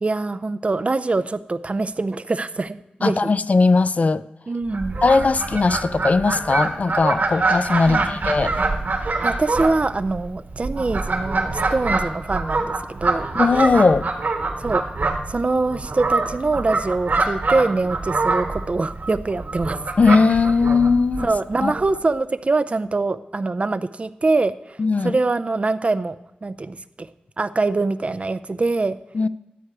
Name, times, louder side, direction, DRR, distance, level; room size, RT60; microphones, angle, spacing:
voice 1, 0.0-3.3 4.5-5.0 7.9-8.2 9.2-13.3 14.6-14.8 15.3-19.8 21.2-26.2 26.4-27.1 27.4-29.0, right 3 dB, 40° right, 12 dB, 0.5 m, -24 dB
voice 2, 3.0-4.2 5.0-8.5 13.3-14.1 20.0-21.3 21.6-21.7 24.8-25.2 29.1-29.3, left 4 dB, 50° left, 15 dB, 0.4 m, -18 dB
Fowl, 4.7-22.0, right 3 dB, 70° right, 1.6 m, -25 dB
12.5 x 8.1 x 4.7 m, 0.92 s
wide cardioid pair, 90°, 3 cm